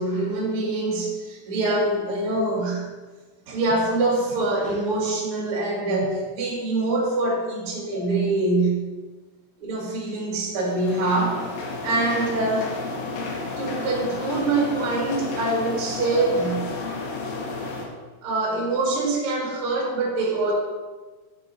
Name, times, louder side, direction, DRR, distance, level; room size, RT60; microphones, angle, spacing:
voice 1, 0.0-2.9 3.5-8.9 9.6-11.4 11.8-12.8 13.6-16.7 18.2-20.5, right 2 dB, 50° right, -4 dB, 1.7 m, -24 dB
sound 1, 10.6-17.8, left 3 dB, 70° left, 2.3 m, -31 dB
6.9 x 5.3 x 4.1 m, 1.3 s
omnidirectional pair, 5.4 m